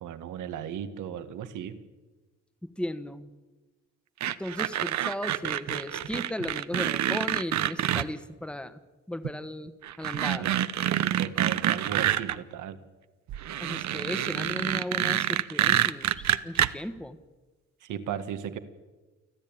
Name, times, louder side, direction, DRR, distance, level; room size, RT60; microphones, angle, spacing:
voice 1, 0.0-1.8 10.4-10.6 10.9-12.8 17.8-18.6, right 9 dB, 80° right, 10 dB, 1.8 m, -36 dB
voice 2, 2.6-3.3 4.4-8.8 9.1-10.5 13.6-17.2, left 1 dB, 5° left, 11 dB, 1.4 m, -36 dB
sound 1, 4.2-8.1 9.2-9.3 9.8-12.4 13.3-16.7, right 11 dB, 65° right, 0.9 m, -27 dB
29.0 x 10.5 x 8.9 m, 1.2 s
cardioid pair, 90°, 30 cm